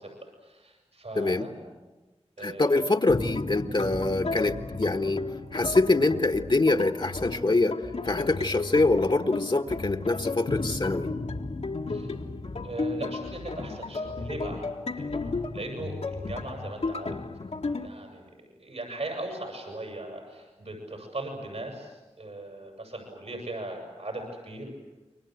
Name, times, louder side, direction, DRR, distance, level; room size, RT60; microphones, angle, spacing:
voice 1, 0.0-1.7 2.4-2.9 11.9-12.1 12.6-14.7 14.9-17.2 17.8-24.7, right 2 dB, 75° right, 2 dB, 7.7 m, -39 dB
voice 2, 1.1-1.5 2.4-5.2 5.5-7.8 8.0-11.1, left 2 dB, 45° left, 6 dB, 1.5 m, -24 dB
sound 1, 3.1-17.9, left 3 dB, 70° left, 1.8 m, -34 dB
28.0 x 24.0 x 8.0 m, 1.1 s
wide cardioid pair, 50°, 11 cm